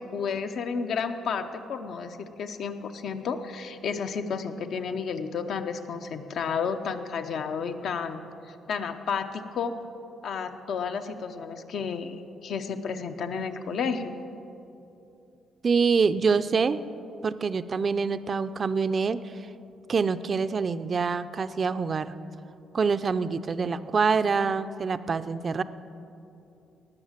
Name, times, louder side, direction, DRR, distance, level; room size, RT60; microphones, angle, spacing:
voice 1, 0.0-9.8 10.2-14.2, left 6 dB, 65° left, 8 dB, 0.8 m, -32 dB
voice 2, 15.6-16.8 17.2-19.2 19.9-22.1 22.7-25.6, right 5 dB, 40° right, 12 dB, 0.5 m, -25 dB
18.5 x 6.5 x 7.4 m, 2.8 s
cardioid pair, 90°, 0 cm